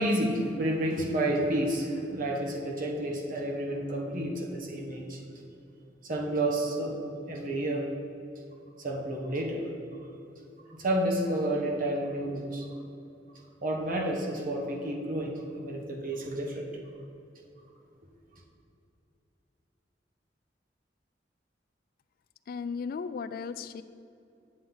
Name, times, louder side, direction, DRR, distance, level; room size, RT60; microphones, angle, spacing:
voice 1, 0.0-5.2 6.0-7.0 7.3-7.9 8.8-9.6 10.8-12.6 13.6-16.7, right 1 dB, 50° right, 0 dB, 1.4 m, -30 dB
voice 2, 22.5-23.8, left 5 dB, 55° left, 13 dB, 0.3 m, -35 dB
9.0 x 7.7 x 3.9 m, 2.7 s
head